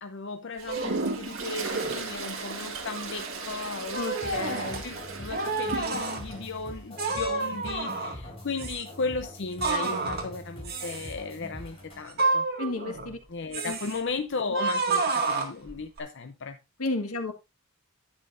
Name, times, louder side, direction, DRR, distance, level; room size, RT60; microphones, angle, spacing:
voice 1, 0.0-12.5 13.3-16.6, left 4 dB, 55° left, 0.6 m, -36 dB
Toilet flush, 0.6-6.4, right 3 dB, 65° right, 1.8 m, -35 dB
sound 1, 0.7-1.1 1.6-2.0 2.7-3.3 3.9-4.8 5.3-6.2 7.0-8.3 8.6-8.8 9.6-10.3 10.7-11.1 12.1-13.2 13.5-14.0 14.5-16.0, right 3 dB, 45° right, 2.0 m, -30 dB
voice 2, 4.0-4.8 12.6-13.2 13.7-13.8 16.8-17.3, left 2 dB, 80° left, 1.6 m, -32 dB
sound 2, 4.2-12.0, left 1 dB, 25° left, 4.5 m, -43 dB
11.0 x 9.0 x 2.6 m
head